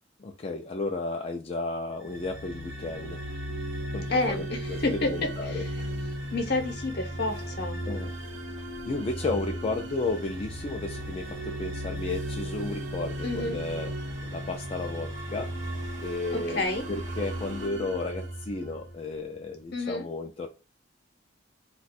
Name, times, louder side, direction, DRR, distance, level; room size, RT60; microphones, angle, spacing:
voice 1, 0.2-3.2 3.9-4.8 5.1-6.0 7.9-8.1 8.9-13.9 14.3-15.5 16.0-16.6 16.9-20.5, left 3 dB, 30° left, 0.4 m, -33 dB
sound 1, 2.0-19.1, right 1 dB, 85° right, 0.8 m, -36 dB
voice 2, 4.1-5.1 5.5-5.7 6.3-7.8 13.2-13.6 16.3-16.8 19.7-20.1, left 2 dB, 60° left, 0.8 m, -29 dB
sound 2, 4.6-17.7, right 3 dB, 40° right, 0.7 m, -50 dB
2.5 x 2.2 x 4.0 m
head